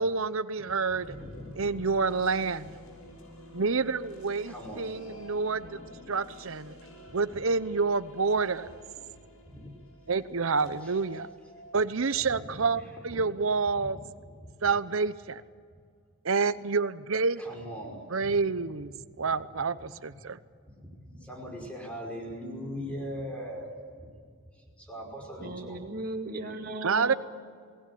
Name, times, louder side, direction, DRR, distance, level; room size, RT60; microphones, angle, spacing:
voice 1, 0.0-1.1 1.6-2.8 3.5-5.8 6.1-6.8 7.1-8.7 10.1-11.3 11.7-14.0 14.6-15.4 16.2-17.4 18.1-18.9 19.2-20.4 26.8-27.1, right 4 dB, 70° right, 14 dB, 0.9 m, -28 dB
sound 1, 0.9-13.1, left 1 dB, 90° left, 5.9 m, -50 dB
voice 2, 1.1-1.7 4.5-5.0 7.1-7.4 9.0-9.1 9.4-9.7 10.6-11.0 12.3-13.2 13.7-13.9 14.2-14.5 17.4-18.3 18.9-19.0 20.8-24.1 24.5-25.8, equal, 5° left, 0 dB, 5.4 m, -41 dB
voice 3, 25.4-27.1, right 2 dB, 45° right, 5 dB, 2.2 m, -37 dB
27.5 x 19.5 x 8.6 m, 2.1 s
head